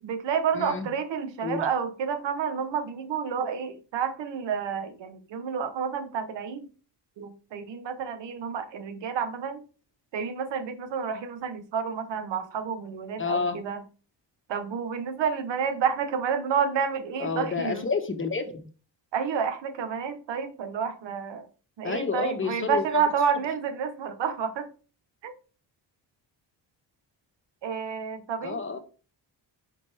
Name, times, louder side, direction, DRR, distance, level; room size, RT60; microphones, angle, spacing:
voice 1, 0.0-6.7 7.2-9.6 10.1-13.8 14.5-17.9 19.1-21.5 21.8-24.7 25.2-25.3 27.6-28.8, right 6 dB, 85° right, 1.3 m, -30 dB
voice 2, 0.5-0.9 1.4-1.6 13.2-13.6 17.2-18.6 21.8-23.0 28.4-28.8, left 4 dB, 30° left, 1.6 m, -29 dB
10.5 x 6.1 x 3.6 m
cardioid pair, 100°, 42 cm